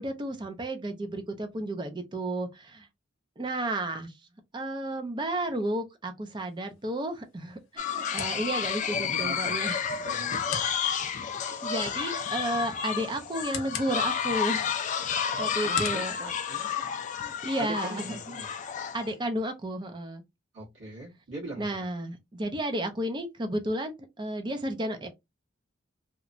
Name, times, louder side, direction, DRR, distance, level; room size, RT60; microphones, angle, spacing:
voice 1, 0.0-2.9 3.4-4.1 4.5-9.8 11.3-14.7 15.4-16.2 16.8-16.9 17.2-18.4 18.9-20.2 21.6-25.1, right 1 dB, 25° right, 0.5 m, -32 dB
sound 1, 6.4-17.3, left 7 dB, 75° left, 0.6 m, -44 dB
sound 2, 7.8-19.1, left 7 dB, 40° left, 0.3 m, -31 dB
voice 2, 8.9-9.7 10.0-11.0 15.6-16.7 17.6-18.5 20.5-21.9, right 1 dB, 75° right, 1.4 m, -41 dB
2.9 x 2.2 x 2.5 m
head